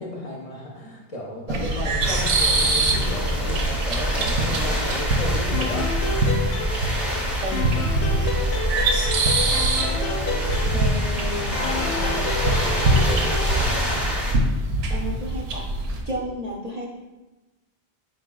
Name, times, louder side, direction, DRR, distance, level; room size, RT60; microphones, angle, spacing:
voice 1, 0.0-5.9 9.7-13.4, left 1 dB, 45° left, -3 dB, 0.6 m, -33 dB
sound 1, 1.5-16.0, right 2 dB, 85° right, 0.8 m, -24 dB
sound 2, 2.0-14.3, equal, ahead, 0.6 m, -28 dB
sound 3, 5.5-7.2 7.5-11.1 11.5-13.5, left 3 dB, 85° left, 0.8 m, -31 dB
voice 2, 11.1-11.7 14.9-15.6 16.1-16.9, right 1 dB, 50° right, -3 dB, 0.6 m, -33 dB
4.6 x 3.8 x 2.3 m, 1.1 s
omnidirectional pair, 1.1 m